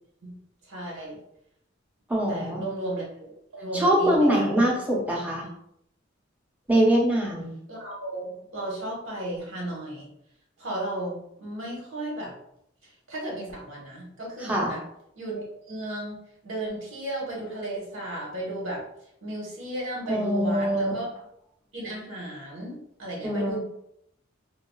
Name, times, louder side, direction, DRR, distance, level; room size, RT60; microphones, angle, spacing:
voice 1, 0.6-1.2 2.3-4.8 7.7-10.1 10.6-12.3 12.8-14.8 15.1-16.2 16.4-18.8 19.2-21.1 21.7-23.6, right 1 dB, 75° right, -3 dB, 1.2 m, -34 dB
voice 2, 2.1-2.6 3.7-5.4 6.7-7.5 14.5-14.7 20.1-20.9 23.2-23.6, right 1 dB, 10° right, -3 dB, 0.7 m, -23 dB
3.8 x 2.3 x 2.3 m, 0.74 s
head